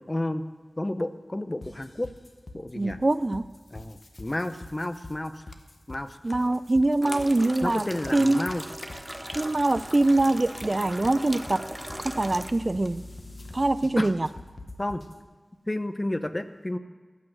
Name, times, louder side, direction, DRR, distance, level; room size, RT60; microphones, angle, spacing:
voice 1, 0.1-0.4 0.8-2.1 2.5-3.0 3.7-5.5 5.9-6.2 7.6-8.6 14.0-14.1 14.8-15.0 15.7-16.8, left 1 dB, 30° left, 10 dB, 0.7 m, -31 dB
sound 1, 1.6-15.2, left 2 dB, 60° left, 1.1 m, -45 dB
voice 2, 2.7-3.5 6.2-7.9 8.1-8.4 9.3-11.6 12.0-13.0 13.5-14.3, right 2 dB, 45° right, 14 dB, 0.3 m, -23 dB
sound 2, 3.4-13.8, left 3 dB, 90° left, 0.8 m, -52 dB
sound 3, 7.0-12.5, right 1 dB, 15° right, 0.6 m, -38 dB
13.5 x 6.2 x 7.7 m, 1.4 s
wide cardioid pair, 55°, 0 cm